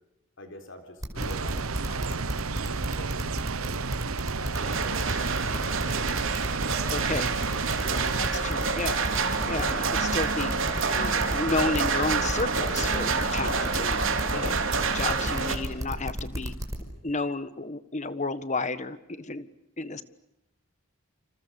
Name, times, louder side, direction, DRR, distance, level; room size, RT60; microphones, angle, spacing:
voice 1, 0.4-3.3 3.6-3.9 4.3-6.2 7.0-8.7 14.3-14.6, left 1 dB, 60° left, 6 dB, 3.9 m, -45 dB
sound 1, 1.0-16.8, equal, 15° right, 5.2 m, -32 dB
sound 2, 1.2-8.3, right 4 dB, 90° right, 1.0 m, -32 dB
sound 3, 4.5-15.5, right 4 dB, 70° right, 3.4 m, -28 dB
voice 2, 6.9-7.3 8.2-9.0 9.5-10.5 10.9-14.0 14.3-14.6 14.8-16.5 17.0-19.5 19.8-20.0, left 3 dB, 35° left, 13 dB, 1.4 m, -32 dB
29.5 x 27.5 x 7.0 m, 0.87 s
head